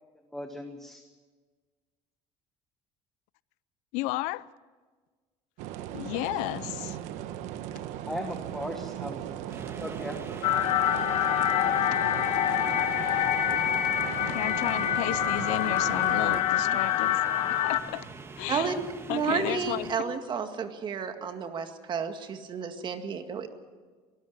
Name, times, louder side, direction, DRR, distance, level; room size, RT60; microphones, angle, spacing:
voice 1, 0.3-1.0 8.0-9.2 9.8-10.2, left 1 dB, 5° left, 1.3 m, -37 dB
voice 2, 3.9-4.5 5.9-7.0 14.2-17.2 17.6-18.1 18.4-18.7 19.1-19.9, left 19 dB, 85° left, 0.6 m, -33 dB
sound 1, 5.6-16.4, right 11 dB, 80° right, 1.2 m, -37 dB
sound 2, 9.5-20.0, right 4 dB, 20° right, 1.4 m, -44 dB
sound 3, 10.4-17.8, left 11 dB, 65° left, 1.6 m, -26 dB
voice 3, 18.5-23.5, right 6 dB, 40° right, 2.0 m, -31 dB
23.0 x 13.5 x 9.4 m
cardioid pair, 125°, 12 cm